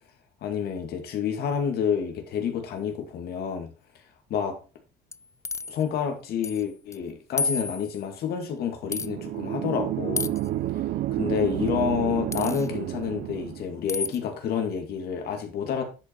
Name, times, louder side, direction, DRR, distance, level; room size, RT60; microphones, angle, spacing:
voice 1, 0.4-3.7 4.3-4.6 5.7-10.3 11.1-15.8, left 7 dB, 70° left, 4 dB, 2.3 m, -29 dB
sound 1, 5.1-5.8 6.4-6.6 6.9-7.0 7.4-8.0 8.9-9.1 10.2-10.5 12.3-12.7 13.9-14.2, left 4 dB, 20° left, 0.3 m, -31 dB
sound 2, 8.8-13.8, right 14 dB, 65° right, 0.5 m, -30 dB
10.5 x 5.2 x 4.6 m, 0.34 s
cardioid pair, 110°, 17 cm